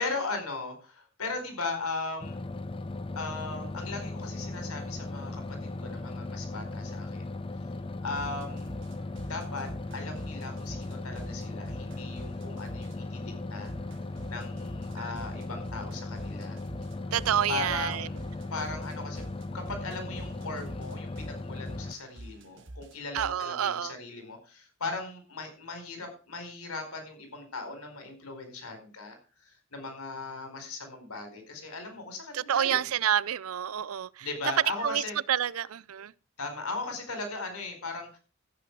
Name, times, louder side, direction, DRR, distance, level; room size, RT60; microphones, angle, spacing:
voice 1, 0.0-2.4 3.1-7.2 8.0-8.8 9.3-13.7 14.3-16.6 17.5-18.2 18.5-19.2 19.5-29.2 29.4-32.8 34.2-35.2 36.4-38.2, left 3 dB, 90° left, 4.6 m, -38 dB
sound 1, 2.2-21.9, left 2 dB, 25° left, 0.5 m, -37 dB
sound 2, 8.1-13.1 13.7-23.5, right 1 dB, 55° right, 1.5 m, -47 dB
voice 2, 17.1-18.1 23.1-23.9 32.3-34.3 34.8-35.0 35.3-36.1, right 9 dB, 80° right, 0.5 m, -28 dB
14.5 x 8.6 x 4.7 m
head